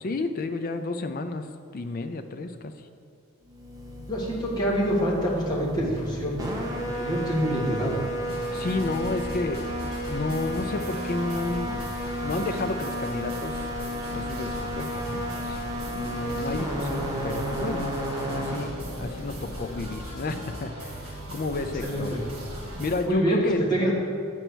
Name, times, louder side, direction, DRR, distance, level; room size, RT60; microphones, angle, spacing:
voice 1, 0.0-1.5 1.7-2.7 8.5-9.6 10.0-11.9 12.2-13.7 14.1-15.6 15.9-17.9 18.2-22.1 22.8-23.6, left 3 dB, 40° left, 8 dB, 0.4 m, -31 dB
sound 1, 3.5-20.7, equal, 15° right, 0.8 m, -33 dB
voice 2, 4.0-6.4 6.8-8.0 16.5-16.6 21.8-22.2 23.1-23.9, right 1 dB, 20° left, -5 dB, 1.6 m, -26 dB
sound 2, 8.3-23.0, right 1 dB, 75° right, 1.6 m, -39 dB
8.0 x 4.5 x 6.2 m, 2.3 s
head